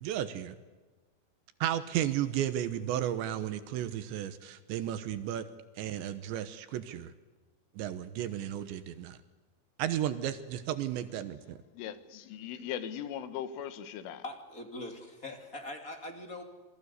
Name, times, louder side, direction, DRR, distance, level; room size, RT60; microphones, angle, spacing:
voice 1, 0.0-0.6 1.6-5.5 5.8-7.1 7.8-9.2 9.8-11.6, right 11 dB, 75° right, 11 dB, 3.2 m, -33 dB
voice 2, 11.7-14.2, left 9 dB, 85° left, 11 dB, 3.9 m, -39 dB
voice 3, 14.2-16.4, left 2 dB, 25° left, 4 dB, 2.1 m, -42 dB
27.5 x 21.0 x 8.3 m, 1.3 s
omnidirectional pair, 5.6 m